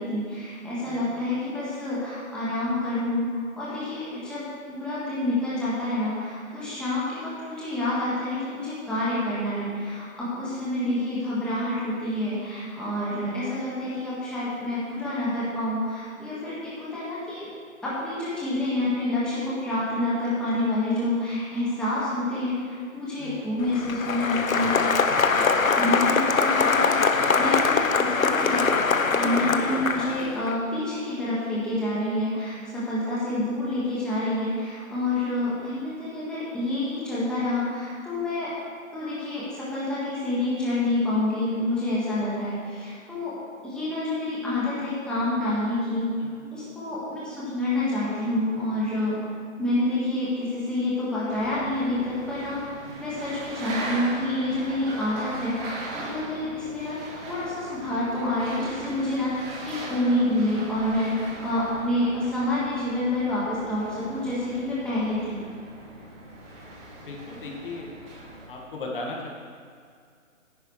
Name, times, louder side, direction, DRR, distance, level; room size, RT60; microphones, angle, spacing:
voice 1, 0.0-17.5 17.8-24.8 25.8-28.6 29.1-38.5 38.9-43.4 43.6-46.1 46.5-49.2 49.6-52.6 53.0-55.6 55.9-59.3 59.6-61.1 61.4-65.4, left 1 dB, ahead, -9 dB, 1.7 m, -28 dB
Applause, 23.6-30.5, left 4 dB, 80° left, 1.0 m, -23 dB
sound 1, 51.3-68.5, right 2 dB, 15° right, 1.9 m, -40 dB
voice 2, 67.0-67.9 68.5-69.3, left 3 dB, 40° left, -1 dB, 1.9 m, -37 dB
13.5 x 10.5 x 3.3 m, 2.2 s
figure-of-eight pair, 145°, 40 cm